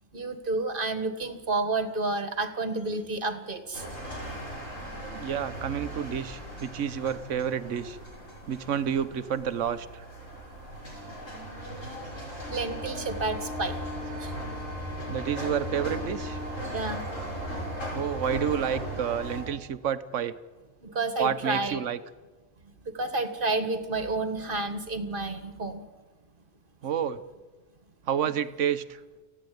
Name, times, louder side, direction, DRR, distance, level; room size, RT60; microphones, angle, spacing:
voice 1, 0.1-3.9 12.5-14.5 15.0-15.1 16.7-17.0 17.9-18.0 20.8-21.8 22.9-25.8, right 3 dB, 45° right, 9 dB, 1.8 m, -30 dB
sound 1, 3.7-19.4, equal, 85° left, 7.0 m, -37 dB
voice 2, 5.1-8.0 8.5-10.1 15.1-16.4 17.9-20.4 21.2-22.0 26.8-27.2 28.1-29.0, right 8 dB, 75° right, 13 dB, 1.3 m, -29 dB
29.5 x 10.0 x 9.4 m, 1.2 s
omnidirectional pair, 1.3 m